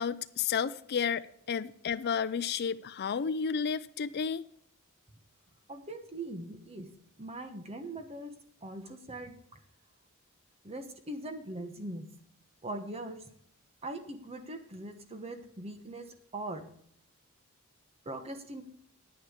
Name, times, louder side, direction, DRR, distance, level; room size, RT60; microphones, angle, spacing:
voice 1, 0.0-4.5, left 6 dB, 50° left, 12 dB, 0.4 m, -32 dB
voice 2, 5.7-6.9 7.2-8.3 8.6-9.6 10.6-12.0 12.6-13.2 13.8-16.1 16.3-16.7 18.0-18.6, right 2 dB, 30° right, 7 dB, 1.2 m, -41 dB
9.4 x 9.3 x 5.1 m, 0.66 s
head